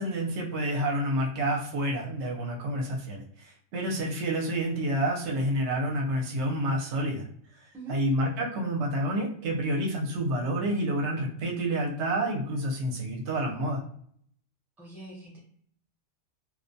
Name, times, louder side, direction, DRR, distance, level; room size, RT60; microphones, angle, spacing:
voice 1, 0.0-7.3 7.6-13.8, right 1 dB, 75° right, 0 dB, 0.9 m, -29 dB
voice 2, 14.8-15.4, right 2 dB, ahead, -4 dB, 0.6 m, -43 dB
2.4 x 2.1 x 2.6 m, 0.63 s
omnidirectional pair, 1.3 m